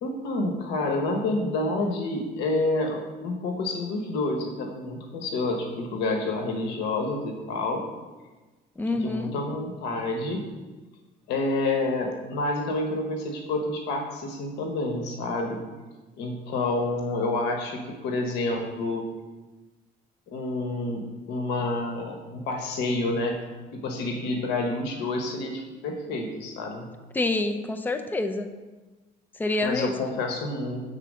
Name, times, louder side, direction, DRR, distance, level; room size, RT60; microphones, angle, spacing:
voice 1, 0.0-7.8 8.9-10.4 11.3-15.6 16.2-19.1 20.3-23.4 23.7-26.9 29.6-30.9, left 2 dB, 90° left, 2 dB, 1.0 m, -28 dB
voice 2, 8.8-9.3 27.1-28.5 29.4-29.9, left 2 dB, 10° left, 8 dB, 0.5 m, -27 dB
6.7 x 4.0 x 6.1 m, 1.2 s
cardioid pair, 110°, 17 cm